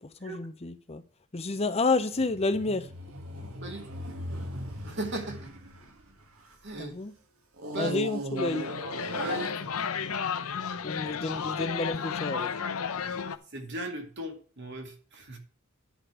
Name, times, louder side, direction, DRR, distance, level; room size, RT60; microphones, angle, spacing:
voice 1, 0.0-1.0 1.3-2.9 6.8-7.1 7.8-8.7 10.8-12.5, left 3 dB, 30° left, 0.6 m, -30 dB
sound 1, 2.1-6.8 7.6-10.1 10.8-10.9, right 1 dB, 70° right, 1.9 m, -38 dB
voice 2, 3.6-3.9 4.8-5.5 6.6-6.9 7.7-8.0 9.2-9.7 13.5-15.4, right 1 dB, 50° right, 2.2 m, -37 dB
sound 2, 8.4-13.4, left 6 dB, 75° left, 0.7 m, -33 dB
10.0 x 5.2 x 5.9 m
head